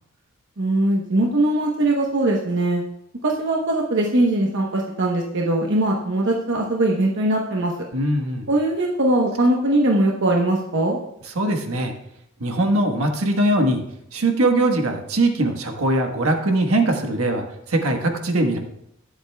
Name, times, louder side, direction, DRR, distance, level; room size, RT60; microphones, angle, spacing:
voice 1, 0.6-2.8 3.2-7.7 8.5-11.0, right 1 dB, 60° right, -1 dB, 1.1 m, -21 dB
voice 2, 7.9-8.5 11.3-11.9 12.4-13.8 14.1-18.6, right 1 dB, 75° right, 4 dB, 1.4 m, -21 dB
21.5 x 7.9 x 2.3 m, 0.80 s
head